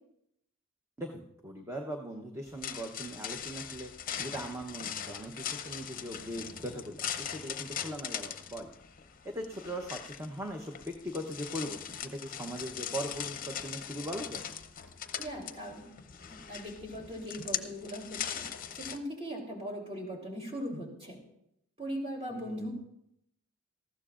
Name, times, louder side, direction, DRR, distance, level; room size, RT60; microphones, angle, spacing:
voice 1, 1.0-3.9 4.2-8.7 9.2-14.4 22.3-22.7, equal, 15° right, 2 dB, 0.9 m, -40 dB
sound 1, 2.5-19.0, left 9 dB, 40° left, 0.7 m, -40 dB
voice 2, 15.2-15.9 16.3-18.5 18.7-21.2 21.8-22.7, equal, 30° right, 0 dB, 3.4 m, -39 dB
19.0 x 14.5 x 2.5 m, 0.77 s
head